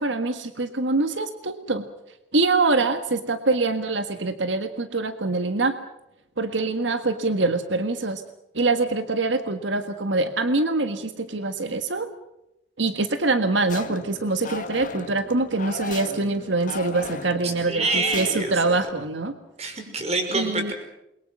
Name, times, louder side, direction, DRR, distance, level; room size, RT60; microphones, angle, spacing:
voice 1, 0.0-1.8 2.3-5.8 6.4-8.2 8.5-12.1 12.8-19.3 20.3-20.7, right 3 dB, 85° right, 8 dB, 1.7 m, -24 dB
sound 1, 13.7-18.9, left 3 dB, 45° left, 1.5 m, -36 dB
voice 2, 17.4-18.6 19.6-20.7, right 3 dB, 35° right, 5 dB, 5.4 m, -26 dB
28.5 x 23.0 x 6.2 m, 0.88 s
head